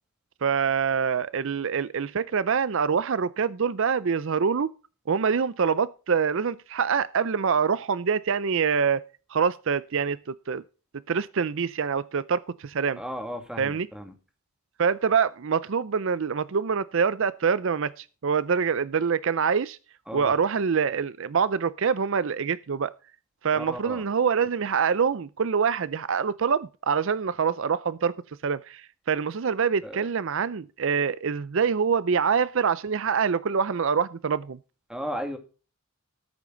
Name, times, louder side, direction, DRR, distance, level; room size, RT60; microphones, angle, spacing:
voice 1, 0.4-4.7 5.1-9.0 9.3-10.2 10.5-10.6 11.1-13.0 13.6-13.9 14.8-19.8 20.1-22.9 23.4-28.1 28.4-34.6, right 6 dB, 60° right, 0.5 m, -25 dB
voice 2, 13.0-14.1 20.1-20.3 23.5-24.0 29.8-30.1 34.9-35.4, equal, 5° right, 2.1 m, -35 dB
13.5 x 10.0 x 3.8 m
head